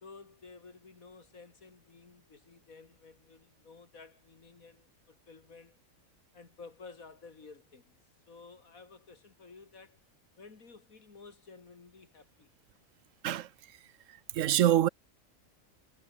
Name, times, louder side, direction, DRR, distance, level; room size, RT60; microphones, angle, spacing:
voice 1, 0.0-5.8 6.3-7.9 8.3-10.0 10.4-12.5, left 4 dB, 85° left, 3.1 m, -53 dB
voice 2, 14.3-14.9, right 12 dB, 70° right, 1.1 m, -24 dB
omnidirectional pair, 1.4 m